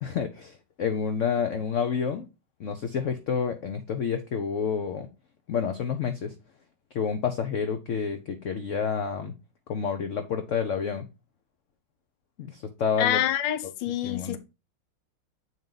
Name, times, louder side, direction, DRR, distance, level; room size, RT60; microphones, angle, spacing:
voice 1, 0.0-2.3 2.6-5.1 5.5-6.3 6.9-9.3 9.7-11.1 12.4-13.2 14.0-14.4, left 6 dB, 60° left, 0.8 m, -29 dB
voice 2, 13.0-14.4, left 12 dB, 75° left, 1.3 m, -26 dB
7.9 x 4.6 x 3.8 m
omnidirectional pair, 2.1 m